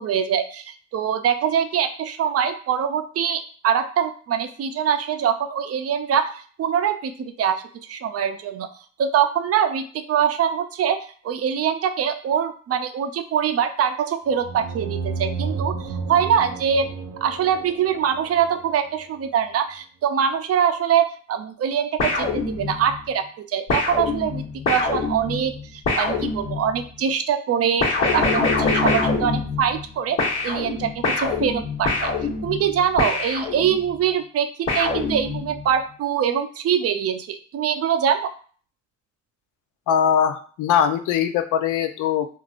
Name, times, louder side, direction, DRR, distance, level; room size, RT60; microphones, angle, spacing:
voice 1, 0.0-7.6 7.9-8.7 9.0-16.9 17.2-32.1 32.4-34.5 34.7-38.3, right 8 dB, 50° right, 8 dB, 0.5 m, -23 dB
sound 1, 14.4-18.9, right 4 dB, 85° right, 0.7 m, -32 dB
sound 2, 22.0-23.0 23.7-26.9 27.8-29.9 30.2-33.9 34.7-35.7, left 3 dB, 60° left, 1.2 m, -24 dB
voice 2, 39.9-42.3, left 8 dB, 80° left, 8 dB, 0.5 m, -21 dB
3.4 x 2.5 x 2.4 m, 0.43 s
cardioid pair, 90°, 30 cm